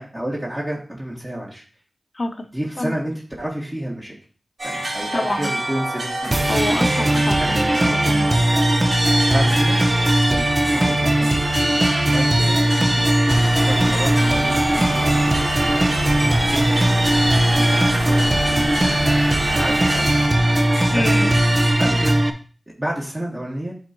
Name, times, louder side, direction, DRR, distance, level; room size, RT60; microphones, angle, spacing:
voice 1, 0.0-1.6 2.5-4.1 4.6-6.4 7.3-7.5 9.0-9.8 10.3-18.9 19.5-20.2 20.9-21.4 21.8-22.2 22.8-23.7, right 1 dB, 25° right, -6 dB, 2.0 m, -31 dB
voice 2, 2.1-2.5 2.8-3.0 4.7-5.5 6.5-8.3 20.9-21.4, left 2 dB, 50° left, 7 dB, 0.8 m, -27 dB
sound 1, 4.6-21.7, right 1 dB, 80° right, 3.1 m, -26 dB
sound 2, 6.3-22.3, right 1 dB, 40° right, 0.8 m, -19 dB
sound 3, 13.3-20.3, left 1 dB, 10° left, 0.6 m, -31 dB
10.0 x 4.0 x 3.0 m, 0.40 s
cardioid pair, 45°, 0 cm